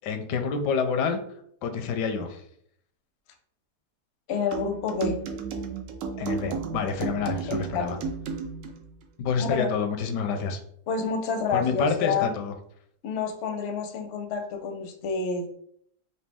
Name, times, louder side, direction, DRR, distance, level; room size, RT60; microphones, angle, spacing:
voice 1, 0.0-1.2 1.6-2.4 6.2-8.0 9.2-10.6 11.5-12.5, left 5 dB, 85° left, 7 dB, 1.2 m, -28 dB
voice 2, 4.3-5.2 7.5-7.9 9.4-9.7 10.9-12.3 13.0-15.5, left 5 dB, 60° left, 5 dB, 0.7 m, -28 dB
sound 1, 4.5-8.8, right 5 dB, 70° right, 0.8 m, -33 dB
4.2 x 2.7 x 3.4 m, 0.67 s
omnidirectional pair, 1.8 m